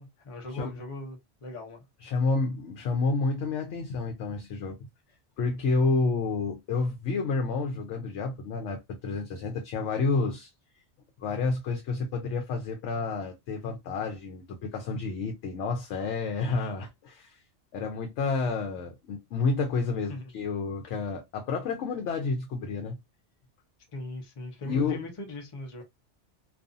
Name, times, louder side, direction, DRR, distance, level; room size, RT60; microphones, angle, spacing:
voice 1, 0.0-1.8 20.1-20.2 23.9-25.8, left 2 dB, 35° left, 0.7 m, -40 dB
voice 2, 2.0-4.8 5.4-10.5 11.2-17.4 17.7-23.0 24.6-25.0, left 4 dB, 80° left, 0.9 m, -30 dB
2.5 x 2.3 x 2.4 m
omnidirectional pair, 1.2 m